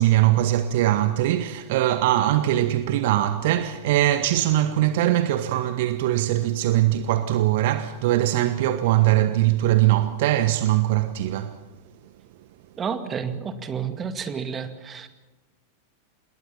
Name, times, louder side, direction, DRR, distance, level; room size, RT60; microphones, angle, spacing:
voice 1, 0.0-11.6, right 14 dB, 50° right, 1.2 m, -21 dB
voice 2, 12.8-15.1, right 6 dB, 20° right, 2.3 m, -30 dB
27.0 x 21.0 x 5.8 m
figure-of-eight pair, 90°, 0 cm